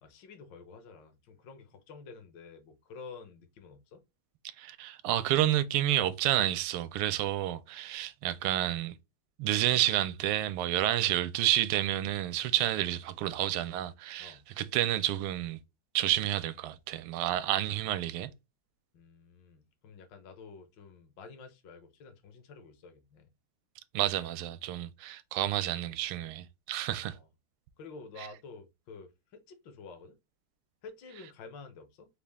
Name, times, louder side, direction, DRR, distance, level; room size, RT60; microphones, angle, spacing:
voice 1, 0.0-4.0 14.2-14.4 18.9-23.3 26.9-27.3 27.8-30.2 30.8-32.1, left 4 dB, 65° left, 1.5 m, -50 dB
voice 2, 4.6-8.9 9.4-15.6 15.9-18.3 23.9-27.2, right 13 dB, 85° right, 1.5 m, -30 dB
5.2 x 2.3 x 3.4 m
omnidirectional pair, 2.4 m